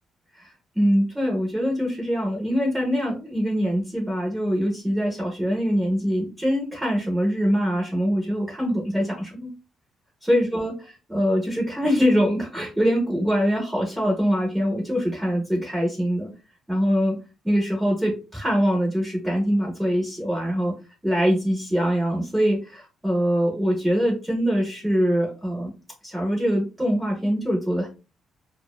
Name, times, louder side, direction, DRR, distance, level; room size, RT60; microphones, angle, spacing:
voice 1, 0.7-9.5 10.2-10.7 11.1-16.3 16.7-17.2 17.4-20.7 21.0-25.7 26.0-27.9, equal, 5° right, -2 dB, 0.6 m, -23 dB
2.5 x 2.1 x 2.3 m, 0.30 s
cardioid pair, 170°, 0 cm